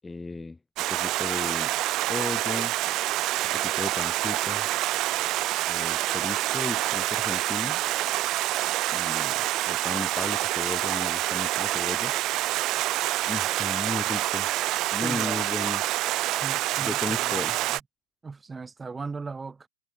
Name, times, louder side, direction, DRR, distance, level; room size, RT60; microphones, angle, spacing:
voice 1, 0.0-0.6 0.9-1.7 2.1-2.7 3.6-4.7 5.7-7.8 8.9-12.1 13.3-14.5 14.9-15.8 16.8-17.6, left 3 dB, 10° left, 1.2 m, -35 dB
Stream, 0.8-17.8, right 16 dB, 35° right, 0.9 m, -27 dB
voice 2, 15.0-15.4 16.4-17.8 18.2-19.7, right 4 dB, 15° right, 3.9 m, -38 dB
figure-of-eight pair, 100°, 0 cm